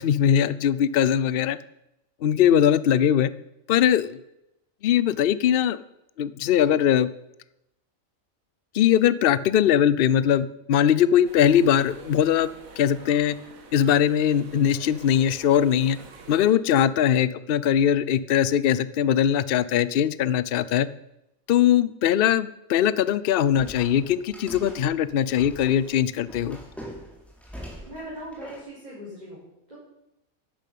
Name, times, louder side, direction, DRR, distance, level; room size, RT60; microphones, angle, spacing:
voice 1, 0.0-1.6 2.2-3.3 3.7-4.2 4.8-5.8 6.2-7.1 8.7-12.5 12.8-13.4 13.7-16.0 16.3-20.9 21.5-26.6, left 9 dB, 55° left, 16 dB, 0.7 m, -21 dB
sound 1, 11.2-16.6, right 4 dB, 90° right, 1.9 m, -47 dB
sound 2, 23.6-28.6, equal, ahead, 4.0 m, -42 dB
voice 2, 27.9-29.8, right 1 dB, 30° right, -7 dB, 5.4 m, -40 dB
11.5 x 10.5 x 8.5 m, 0.87 s
omnidirectional pair, 1.4 m